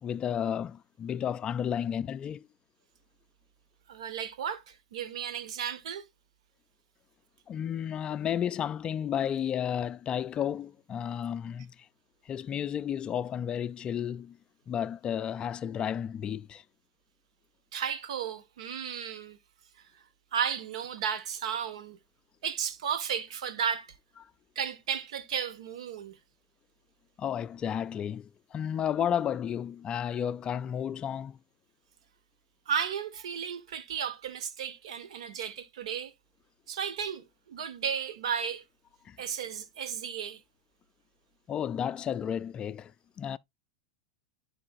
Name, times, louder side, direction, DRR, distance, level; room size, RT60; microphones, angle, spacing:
voice 1, 0.0-2.5 7.5-11.9 12.3-14.4 14.7-16.6 24.2-24.3 27.2-31.4 39.1-39.2 41.5-42.9 43.2-43.4, left 9 dB, 30° left, 0.3 m, -32 dB
voice 2, 3.9-6.0 17.7-19.4 20.3-22.0 22.4-23.9 24.5-26.2 32.7-36.1 36.7-38.6 39.2-40.4, right 7 dB, 75° right, 1.5 m, -34 dB
12.0 x 4.8 x 2.5 m
hypercardioid pair, 105°, 3 cm